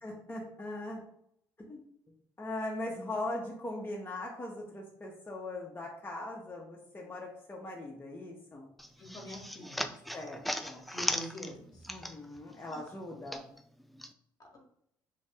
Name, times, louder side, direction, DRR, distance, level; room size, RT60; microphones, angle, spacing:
voice 1, 0.0-1.0 1.7-1.8 2.4-8.7 10.1-10.8 11.9-13.5, left 2 dB, 20° left, -2 dB, 0.7 m, -40 dB
sound 1, 8.8-12.4 12.7-14.1, equal, ahead, 0.3 m, -37 dB
voice 2, 9.0-9.9 10.9-11.9, left 1 dB, 40° left, 0 dB, 1.1 m, -45 dB
2.7 x 2.5 x 3.3 m, 0.69 s
hypercardioid pair, 55°, 10 cm